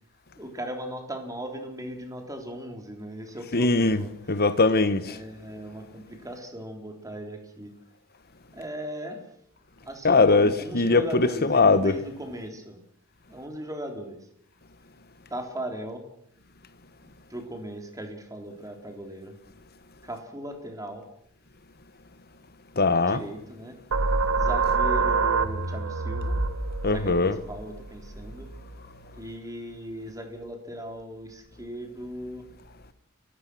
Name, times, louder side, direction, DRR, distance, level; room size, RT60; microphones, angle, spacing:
voice 1, 0.4-4.1 5.1-7.7 8.5-9.2 9.8-12.8 13.3-14.2 15.3-16.0 17.3-19.3 20.0-21.1 23.1-23.7 24.4-26.4 26.9-28.5 29.1-32.5, right 1 dB, 15° right, 3.7 m, -37 dB
voice 2, 3.5-4.0 4.3-5.2 10.0-11.9 22.8-23.2 26.8-27.3, left 3 dB, 45° left, 1.4 m, -21 dB
sound 1, 23.9-29.2, right 4 dB, 85° right, 1.6 m, -27 dB
29.5 x 15.5 x 6.3 m
head